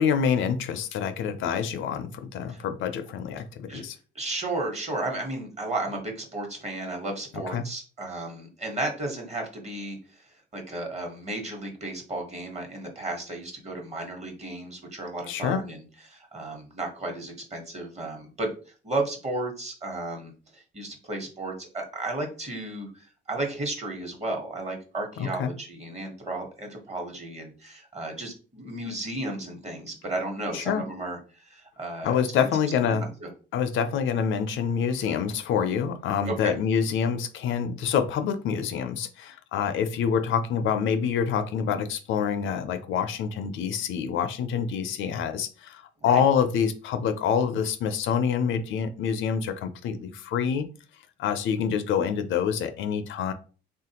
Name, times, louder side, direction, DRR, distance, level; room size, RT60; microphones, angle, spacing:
voice 1, 0.0-4.0 7.5-7.6 15.3-15.6 25.2-25.5 30.5-30.8 32.0-33.1 33.5-50.7 51.2-53.3, left 7 dB, 75° left, 10 dB, 0.5 m, -26 dB
voice 2, 4.1-32.5 32.8-33.3 36.3-36.5 46.0-46.2, right 2 dB, 35° right, 2 dB, 1.2 m, -34 dB
3.3 x 2.4 x 2.8 m, 0.37 s
cardioid pair, 90°, 20 cm